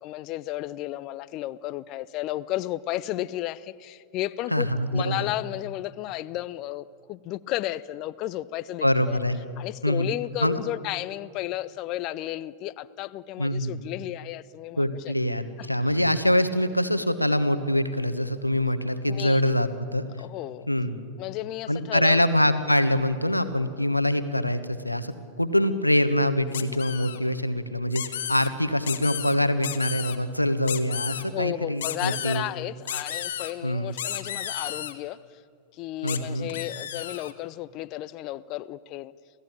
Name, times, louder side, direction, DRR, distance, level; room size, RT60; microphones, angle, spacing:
voice 1, 0.0-4.7 4.9-9.2 9.6-15.1 15.6-15.7 19.1-19.4 20.2-20.7 21.2-22.2 31.3-35.4 35.7-39.1, left 15 dB, 40° left, 0.6 m, -33 dB
voice 2, 4.5-5.3 8.8-9.4 9.8-10.1 10.4-10.6 13.4-13.7 14.8-20.0 20.7-21.0 21.7-32.4 33.6-33.9 36.0-36.5, left 1 dB, 90° left, 1.3 m, -24 dB
sound 1, 26.5-27.2 27.9-28.5 28.8-29.3 29.6-30.2 30.7-31.2 31.8-32.4 32.9-33.5 34.0-34.9 36.1-36.2 36.5-37.3, left 10 dB, 60° left, 1.4 m, -33 dB
28.0 x 17.0 x 8.8 m
figure-of-eight pair, 90°, 0 cm